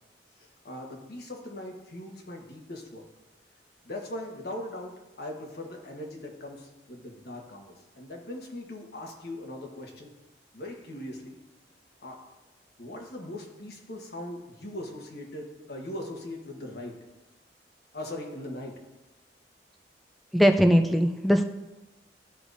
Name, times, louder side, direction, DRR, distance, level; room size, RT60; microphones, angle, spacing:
voice 1, 0.4-3.0 3.8-10.1 10.5-11.4 12.0-12.2 12.8-17.0 17.9-18.7, left 1 dB, 60° left, 0 dB, 1.3 m, -40 dB
voice 2, 20.3-21.4, equal, ahead, 6 dB, 0.3 m, -20 dB
13.0 x 4.8 x 2.6 m, 1.0 s
head